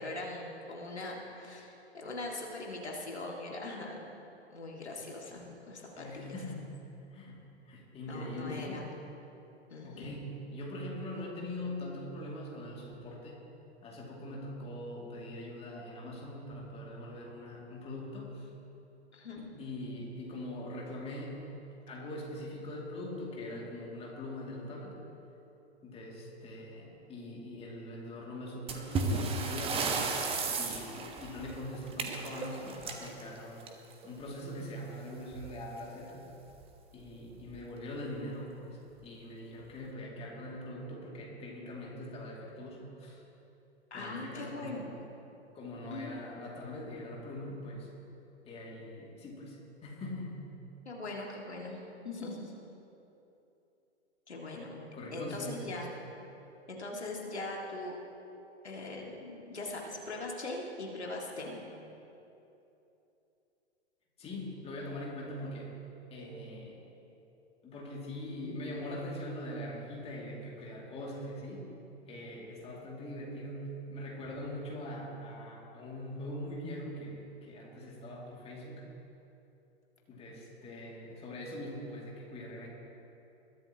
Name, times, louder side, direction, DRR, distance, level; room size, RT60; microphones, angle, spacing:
voice 1, 0.0-4.0 4.5-6.4 8.1-8.9 9.7-10.2 19.1-19.4 43.9-44.9 45.9-46.2 50.9-51.8 52.0-52.5 54.3-54.7 55.1-55.9 56.7-58.0 58.6-61.6, left 2 dB, 75° left, -1 dB, 2.2 m, -41 dB
voice 2, 5.9-6.8 7.1-7.4 7.7-8.8 9.8-13.4 13.8-18.5 19.4-21.5 21.9-25.0 25.8-30.0 30.5-33.7 34.0-36.2 36.9-43.2 43.9-44.9 45.5-47.9 48.4-50.4 54.4-54.6 54.9-55.7 64.2-65.8 66.1-66.8 67.6-71.7 72.1-78.8 80.1-82.7, left 1 dB, 15° left, -3 dB, 2.4 m, -42 dB
sound 1, 28.7-34.1 35.3-35.5 35.8-35.9 36.5-36.6 37.3-37.6, right 3 dB, 15° right, 1.2 m, -34 dB
21.5 x 13.0 x 2.9 m, 2.9 s
figure-of-eight pair, 105°, 33 cm